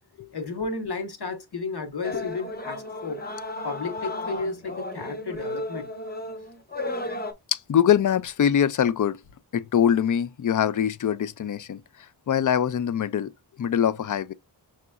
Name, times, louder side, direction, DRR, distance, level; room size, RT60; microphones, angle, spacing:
voice 1, 0.3-3.2 3.6-5.9, left 3 dB, 65° left, 1.1 m, -33 dB
sound 1, 2.0-7.3, left 1 dB, 20° left, 0.9 m, -34 dB
voice 2, 7.5-9.2 9.5-13.3 13.6-14.3, left 9 dB, 50° left, 0.4 m, -23 dB
5.9 x 3.0 x 2.3 m
wide cardioid pair, 70°, 42 cm